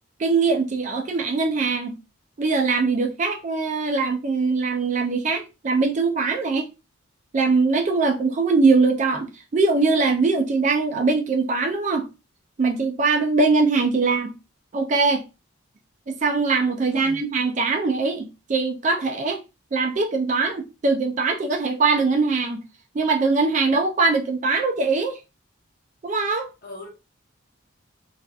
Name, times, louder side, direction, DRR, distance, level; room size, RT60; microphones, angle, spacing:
voice 1, 0.2-2.0 2.4-6.7 7.3-12.1 12.6-14.3 14.7-15.2 16.1-19.4 19.7-22.6 22.9-25.2 26.0-26.5, right 4 dB, 35° right, 0.3 m, -22 dB
voice 2, 16.9-17.2 26.6-26.9, left 2 dB, 45° left, 0.8 m, -40 dB
2.6 x 2.4 x 2.3 m
head